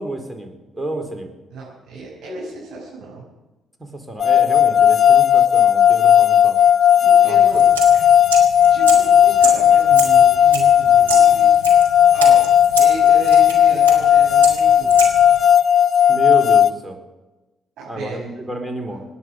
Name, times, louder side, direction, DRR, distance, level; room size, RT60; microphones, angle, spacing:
voice 1, 0.0-1.3 3.8-6.6 7.2-7.4 16.1-17.0 17.9-19.0, right 1 dB, 10° right, 4 dB, 4.1 m, -29 dB
voice 2, 1.5-3.2 6.9-7.6 8.7-11.5 12.1-12.4 12.8-15.0 17.8-18.2 18.9-19.0, right 2 dB, 55° right, -6 dB, 6.5 m, -34 dB
sound 1, 4.2-16.7, left 9 dB, 45° left, 0.4 m, -14 dB
sound 2, 7.5-15.4, right 5 dB, 85° right, 2.8 m, -30 dB
27.0 x 10.0 x 5.3 m, 1.1 s
figure-of-eight pair, 45°, 0 cm